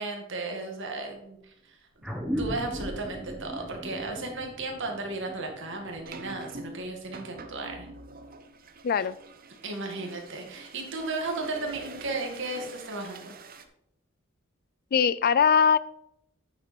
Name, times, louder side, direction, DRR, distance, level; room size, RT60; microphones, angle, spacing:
voice 1, 0.0-1.8 2.2-7.9 9.0-9.1 9.6-13.4, right 2 dB, 65° right, 2 dB, 2.2 m, -35 dB
sound 1, 2.0-6.9, equal, ahead, 1.4 m, -37 dB
sound 2, 2.8-3.0 3.4-3.7 4.8-13.6, right 3 dB, 45° right, 0.9 m, -46 dB
voice 2, 8.8-9.2 14.9-15.8, left 7 dB, 45° left, 18 dB, 0.4 m, -21 dB
9.3 x 7.1 x 4.4 m, 0.78 s
head